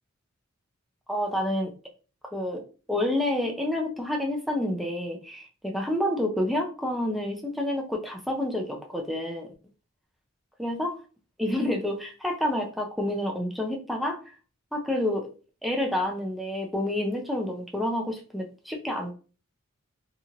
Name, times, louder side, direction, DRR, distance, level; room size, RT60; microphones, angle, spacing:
voice 1, 1.1-1.7 2.3-2.6 2.9-9.5 10.6-10.9 11.4-14.2 14.7-15.3 15.6-19.1, left 1 dB, ahead, 1 dB, 0.4 m, -28 dB
2.9 x 2.8 x 2.4 m, 0.37 s
head